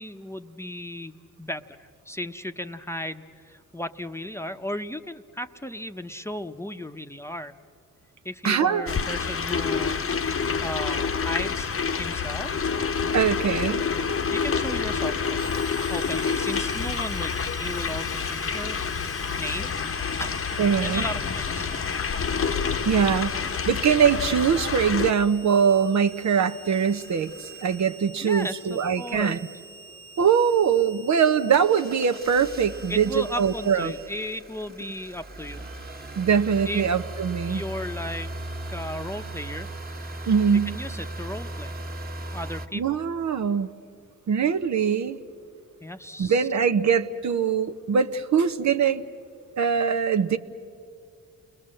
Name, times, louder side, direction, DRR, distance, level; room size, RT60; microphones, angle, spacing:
voice 1, 0.0-7.5 8.2-10.0 10.6-12.5 14.3-15.5 15.9-18.8 19.4-19.7 20.2-20.3 20.8-21.8 28.2-29.4 32.9-35.6 36.6-36.8 37.5-38.3 38.7-39.7 40.7-41.7 42.3-43.0 45.8-46.5, left 1 dB, 10° left, 7 dB, 1.0 m, -35 dB
voice 2, 8.4-8.9 13.1-13.8 20.6-21.0 22.8-23.4 23.7-29.4 30.2-33.9 36.2-37.6 40.3-40.7 42.7-43.7 44.3-45.2 46.2-49.0 49.6-50.4, right 7 dB, 55° right, 9 dB, 0.9 m, -22 dB
sound 1, 8.9-25.1, left 6 dB, 40° left, 1.0 m, -28 dB
Harmonica, 15.4-34.1, right 4 dB, 85° right, 1.6 m, -46 dB
sound 2, 26.0-28.1 31.5-42.7, right 1 dB, 25° right, 1.6 m, -38 dB
29.5 x 20.5 x 7.7 m, 2.4 s
supercardioid pair, 55°, 34 cm